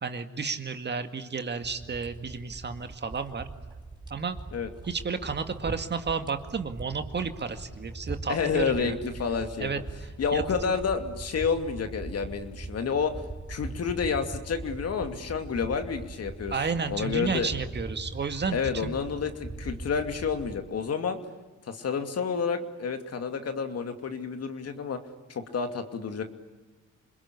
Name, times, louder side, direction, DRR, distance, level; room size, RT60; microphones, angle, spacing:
voice 1, 0.0-3.4 4.1-4.4 4.9-9.0 9.6-9.8 10.3-10.7 16.5-19.0, right 5 dB, 35° right, 8 dB, 2.0 m, -32 dB
sound 1, 1.6-20.6, right 2 dB, 15° right, 3.8 m, -41 dB
voice 2, 8.3-9.7 10.2-13.1 13.5-16.5 16.9-17.5 18.5-21.2 21.7-25.0 25.3-26.2, left 6 dB, 55° left, 7 dB, 2.7 m, -29 dB
27.5 x 21.5 x 9.9 m, 1.2 s
cardioid pair, 90°, 30 cm